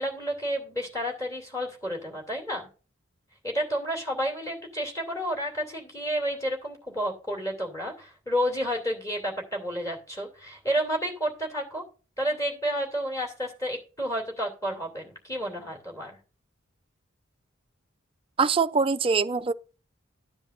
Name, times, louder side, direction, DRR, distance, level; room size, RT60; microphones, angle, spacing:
voice 1, 0.0-2.7 3.4-11.8 12.2-16.1, equal, 15° left, 2.7 m, -30 dB
voice 2, 18.4-19.5, right 5 dB, 25° right, 0.4 m, -23 dB
13.0 x 9.8 x 2.5 m
head